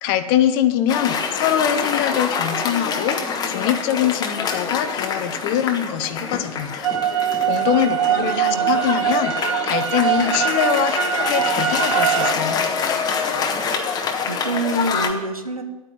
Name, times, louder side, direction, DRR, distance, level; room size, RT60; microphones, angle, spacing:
voice 1, 0.0-12.7, left 10 dB, 40° left, 10 dB, 0.9 m, -23 dB
Cheering / Applause, 0.9-15.1, left 5 dB, 20° left, 1.3 m, -26 dB
sound 1, 6.8-12.3, right 10 dB, 60° right, 0.8 m, -22 dB
voice 2, 8.1-8.7 14.2-15.6, right 1 dB, 90° right, 7 dB, 1.1 m, -26 dB
11.5 x 9.1 x 7.3 m, 1.1 s
figure-of-eight pair, 95°, 18 cm